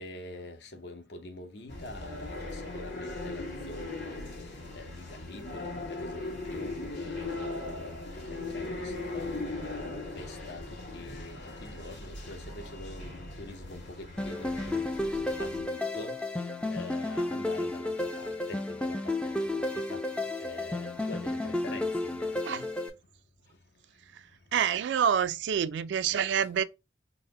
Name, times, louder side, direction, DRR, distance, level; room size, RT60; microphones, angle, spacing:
voice 1, 0.0-20.0 20.4-22.7, left 2 dB, 65° left, 0.7 m, -45 dB
sound 1, 1.7-15.6, left 2 dB, 80° left, 2.2 m, -39 dB
sound 2, 14.2-22.9, left 2 dB, 5° left, 0.3 m, -32 dB
voice 2, 24.5-26.6, right 8 dB, 75° right, 0.3 m, -27 dB
4.0 x 2.1 x 3.6 m
head